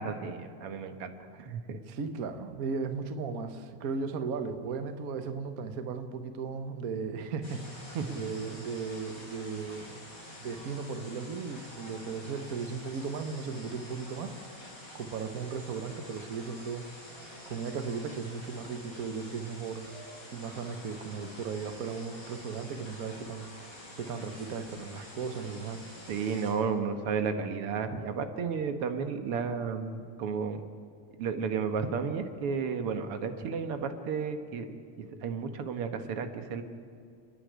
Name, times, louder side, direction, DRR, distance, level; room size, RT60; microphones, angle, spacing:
voice 1, 0.0-1.8 8.0-8.2 26.1-30.6 31.2-36.6, right 5 dB, 60° right, 7 dB, 1.9 m, -33 dB
voice 2, 1.9-10.0 10.4-14.3 14.9-19.9 20.3-23.5 24.0-25.8, right 5 dB, 85° right, 8 dB, 0.8 m, -36 dB
sound 1, 7.4-26.5, left 1 dB, 35° left, 6.3 m, -48 dB
29.5 x 10.0 x 9.4 m, 2.3 s
omnidirectional pair, 3.3 m